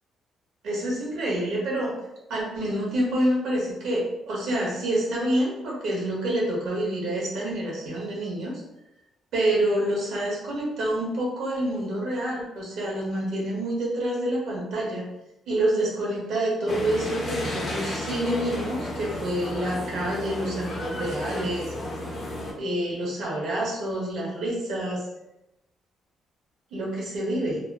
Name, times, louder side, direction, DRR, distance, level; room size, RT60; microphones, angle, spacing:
voice 1, 0.6-1.9 2.3-8.6 9.3-15.1 15.5-21.7 22.6-25.1 26.7-27.6, right 1 dB, 80° right, -4 dB, 1.0 m, -27 dB
sound 1, 16.7-22.5, left 1 dB, 55° left, 0.8 m, -33 dB
2.8 x 2.1 x 2.3 m, 0.91 s
cardioid pair, 90°, 0 cm